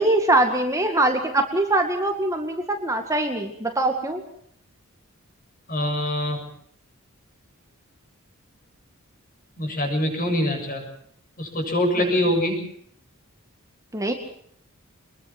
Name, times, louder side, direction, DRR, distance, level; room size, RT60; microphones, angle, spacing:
voice 1, 0.0-4.2 12.0-12.2 13.9-14.1, right 2 dB, 15° right, 4 dB, 2.1 m, -22 dB
voice 2, 5.7-6.4 9.6-10.8 11.4-12.6, left 1 dB, 40° left, 4 dB, 7.4 m, -24 dB
25.5 x 21.5 x 6.1 m, 0.65 s
head